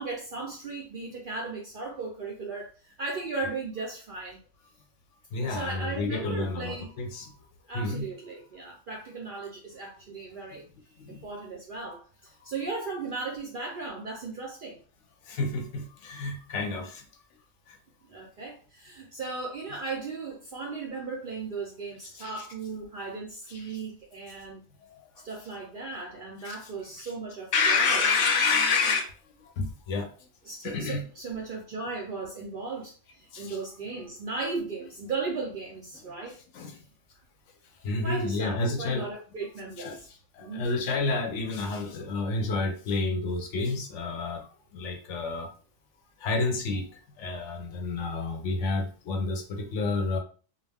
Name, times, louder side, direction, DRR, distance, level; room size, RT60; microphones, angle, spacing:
voice 1, 0.0-4.4 5.4-6.9 7.7-10.6 11.1-14.8 18.1-24.6 25.2-28.1 30.4-36.4 38.0-40.1 40.4-40.7, right 3 dB, 60° right, -1 dB, 0.5 m, -36 dB
voice 2, 5.3-7.3 7.7-8.1 11.1-11.2 15.3-17.0 22.2-22.5 23.5-23.8 26.4-26.6 27.0-27.1 27.5-29.1 29.6-30.1 30.6-31.1 33.3-33.6 36.5-36.8 37.8-39.1 39.8-40.0 40.4-44.5 44.7-45.5 46.2-46.9 47.2-50.2, left 3 dB, 70° left, 4 dB, 0.8 m, -29 dB
2.4 x 2.2 x 3.3 m, 0.40 s
omnidirectional pair, 1.4 m